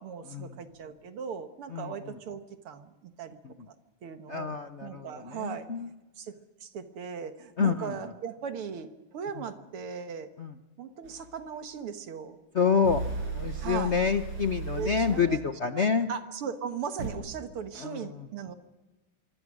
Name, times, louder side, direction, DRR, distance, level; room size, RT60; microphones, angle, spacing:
voice 1, 0.0-3.4 3.7-3.8 4.0-4.6 4.8-5.7 6.2-6.3 6.6-10.3 10.8-12.4 13.6-14.0 14.7-15.4 15.7-18.6, right 7 dB, 85° right, 8 dB, 2.4 m, -38 dB
voice 2, 4.3-5.9 7.6-8.0 10.4-10.5 12.5-13.0 13.3-16.1 17.8-18.1, left 6 dB, 50° left, 8 dB, 0.8 m, -27 dB
sound 1, 11.1-11.2 12.9-15.3 17.0-17.1, right 4 dB, 65° right, 5.9 m, -35 dB
25.5 x 23.5 x 6.4 m, 1.1 s
omnidirectional pair, 2.4 m